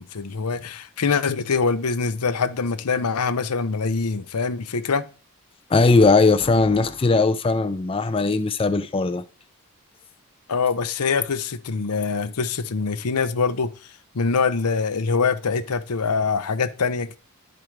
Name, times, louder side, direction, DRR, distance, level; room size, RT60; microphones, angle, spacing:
voice 1, 0.0-5.0 10.5-13.7 14.1-17.2, left 5 dB, 85° left, 0.7 m, -24 dB
voice 2, 5.7-9.2, left 3 dB, 25° left, 0.4 m, -19 dB
11.5 x 5.1 x 4.6 m
head